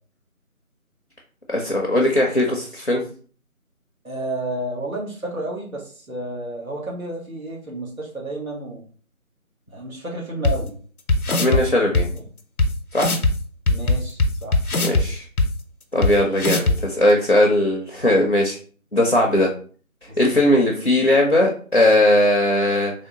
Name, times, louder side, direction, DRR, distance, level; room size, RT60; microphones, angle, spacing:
voice 1, 1.5-3.0 11.3-12.0 12.9-13.1 14.8-15.2 15.9-18.6 18.9-19.5 20.2-22.9, left 1 dB, 50° left, -1 dB, 0.4 m, -19 dB
voice 2, 4.0-8.8 9.7-10.8 11.4-11.6 12.1-12.2 13.7-14.6 16.0-16.1 20.1-20.4, right 1 dB, 70° right, -2 dB, 1.4 m, -31 dB
sound 1, 10.4-10.5 11.1-11.6 11.9-12.0 12.6-12.7 13.0-13.3 13.7-15.0 15.4-15.5 16.0-16.1 16.4-16.8, left 2 dB, 85° left, 0.7 m, -18 dB
3.5 x 2.1 x 2.7 m, 0.43 s
figure-of-eight pair, 170°, 43 cm